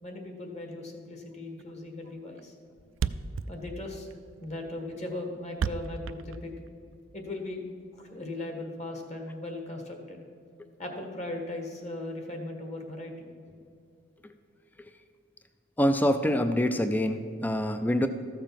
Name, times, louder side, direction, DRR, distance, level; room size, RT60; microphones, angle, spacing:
voice 1, 0.0-2.5 3.5-4.1 4.4-6.5 7.1-7.6 7.9-10.2 10.8-13.3, left 2 dB, 35° left, 3 dB, 1.6 m, -38 dB
Thump thud, 1.6-1.8 2.1-2.2 2.4-2.5 2.7-2.8 2.9-7.0, right 6 dB, 85° right, 0.4 m, -33 dB
voice 2, 15.8-18.1, equal, 10° left, 9 dB, 0.4 m, -26 dB
14.0 x 6.8 x 5.8 m, 2.5 s
head